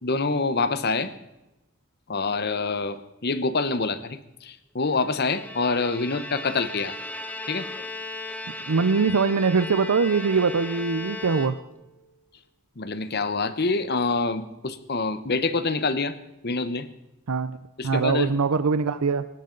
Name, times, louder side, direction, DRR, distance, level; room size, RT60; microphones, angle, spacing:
voice 1, 0.0-1.1 2.1-6.9 7.5-7.7 12.8-16.1 16.4-16.9 17.8-18.4, left 3 dB, 45° left, 13 dB, 0.9 m, -26 dB
Bowed string instrument, 5.0-12.0, left 2 dB, 5° left, 0.9 m, -37 dB
voice 2, 8.7-11.6 17.3-17.6 17.8-19.2, right 4 dB, 90° right, 13 dB, 0.6 m, -22 dB
22.5 x 12.0 x 3.9 m, 0.95 s
head